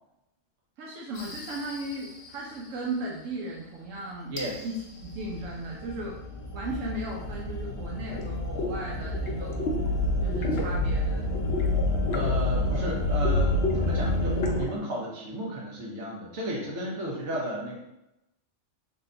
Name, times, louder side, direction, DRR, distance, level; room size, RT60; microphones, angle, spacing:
voice 1, 0.8-4.3 4.6-6.2 6.5-9.7 10.2-11.3, right 1 dB, 85° right, -3 dB, 1.0 m, -36 dB
sound 1, 1.2-2.4 4.4-14.6, left 1 dB, 80° left, 1.1 m, -29 dB
voice 2, 4.3-4.6 6.7-6.8 12.1-17.7, right 1 dB, 65° right, -3 dB, 1.2 m, -34 dB
sound 2, 8.1-8.2 8.6-8.7 9.0-9.9 10.2-10.7 11.3-12.9 13.2-14.7, left 2 dB, 60° left, 0.7 m, -32 dB
3.4 x 2.2 x 3.7 m, 0.89 s
omnidirectional pair, 1.3 m